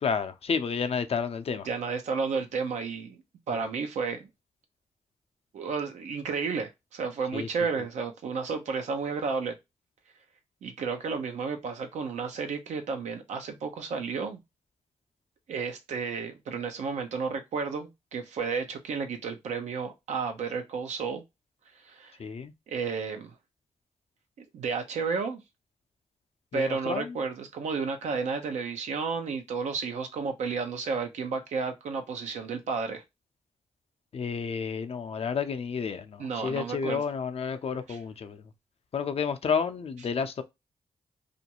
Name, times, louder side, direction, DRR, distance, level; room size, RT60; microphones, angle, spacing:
voice 1, 0.0-1.7 7.3-7.5 22.2-22.5 26.5-27.2 34.1-38.4 38.9-40.4, left 6 dB, 55° left, 0.5 m, -31 dB
voice 2, 1.6-3.2 3.5-4.3 5.5-9.6 10.6-14.4 15.5-21.2 21.9-22.1 22.7-23.3 24.5-25.4 26.5-33.0 36.2-37.0 37.9-38.0, right 5 dB, 80° right, 0.6 m, -32 dB
2.5 x 2.2 x 2.8 m
supercardioid pair, 40°, 12 cm